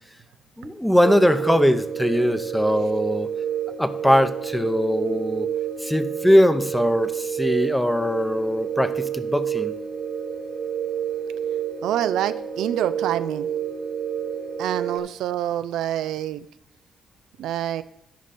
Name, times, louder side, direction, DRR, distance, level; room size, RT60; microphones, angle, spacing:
voice 1, 0.6-3.3 3.8-5.5 5.8-9.7, equal, 5° left, 11 dB, 0.7 m, -21 dB
sound 1, 1.0-15.0, right 8 dB, 50° right, 1.0 m, -29 dB
voice 2, 11.8-13.5 14.6-16.5 17.4-17.8, right 11 dB, 85° right, 13 dB, 0.3 m, -26 dB
11.5 x 5.2 x 4.2 m, 0.84 s
cardioid pair, 90°, 0 cm